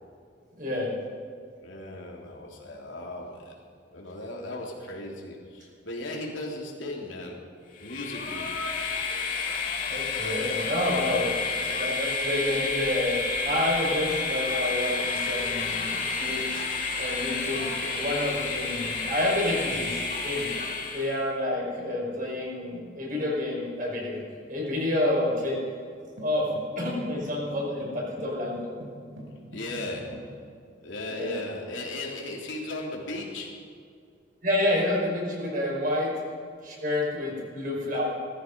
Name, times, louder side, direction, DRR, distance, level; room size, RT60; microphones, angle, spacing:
voice 1, 0.5-0.9 9.9-11.4 11.6-13.2 13.4-16.6 17.0-20.5 20.9-24.2 24.5-25.6 26.2-26.5 26.8-28.7 31.1-31.3 34.4-36.1 36.6-38.0, left 1 dB, 45° right, -3 dB, 5.5 m, -29 dB
voice 2, 1.6-3.5 3.9-7.4 7.8-8.5 10.8-11.3 29.5-30.5 30.8-33.7, left 1 dB, 85° left, -2 dB, 3.4 m, -37 dB
Train, 7.8-21.2, left 4 dB, 45° left, 2.6 m, -30 dB
sound 1, 26.2-30.4, equal, 85° right, 3.9 m, -45 dB
18.5 x 14.5 x 5.4 m, 2.3 s
head